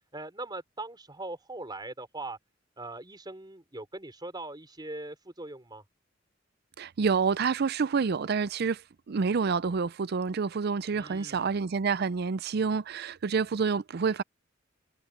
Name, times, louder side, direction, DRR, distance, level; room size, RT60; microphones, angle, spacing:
voice 1, 0.1-2.4 2.8-5.8 10.9-11.6, right 2 dB, 20° right, 4.1 m, -41 dB
voice 2, 6.8-8.8 9.1-14.2, right 5 dB, 55° right, 0.5 m, -28 dB
head